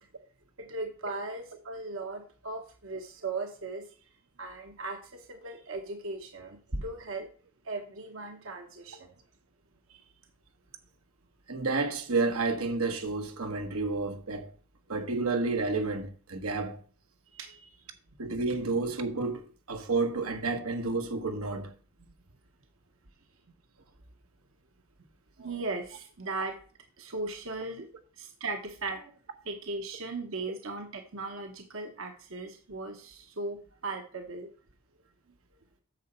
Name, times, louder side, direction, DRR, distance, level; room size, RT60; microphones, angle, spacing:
voice 1, 0.6-4.1 4.4-7.3 7.6-9.1 9.9-10.1 17.3-17.8 25.4-26.6 27.0-27.9 28.2-29.1 29.4-34.5, right 3 dB, 70° right, 1.0 m, -38 dB
voice 2, 11.5-14.5 14.9-16.8 18.2-21.7, right 3 dB, 85° right, 1.3 m, -30 dB
9.3 x 6.8 x 4.3 m
head